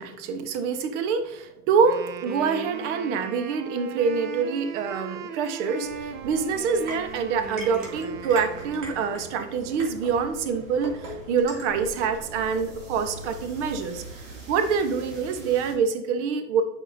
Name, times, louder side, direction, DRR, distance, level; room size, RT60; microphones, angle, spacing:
voice 1, 0.0-14.0 14.5-16.6, right 5 dB, 55° right, 8 dB, 1.1 m, -26 dB
Wind instrument woodwind instrument, 1.8-9.5, right 6 dB, 25° right, 0.6 m, -39 dB
sound 1, 5.8-15.7, right 2 dB, 70° right, 2.7 m, -41 dB
8.8 x 6.3 x 2.7 m, 0.94 s
hypercardioid pair, 95°, 42 cm